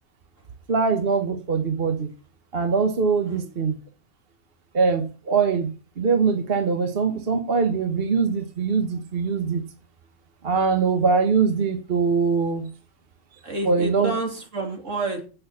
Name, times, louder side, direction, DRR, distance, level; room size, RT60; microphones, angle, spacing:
voice 1, 0.7-2.1 2.5-3.8 4.7-9.6 10.4-12.7 13.7-14.1, right 5 dB, 50° right, 6 dB, 1.5 m, -22 dB
voice 2, 3.2-3.5 13.4-15.2, right 2 dB, 75° right, 3 dB, 3.3 m, -29 dB
16.0 x 7.0 x 5.8 m, 0.37 s
omnidirectional pair, 1.3 m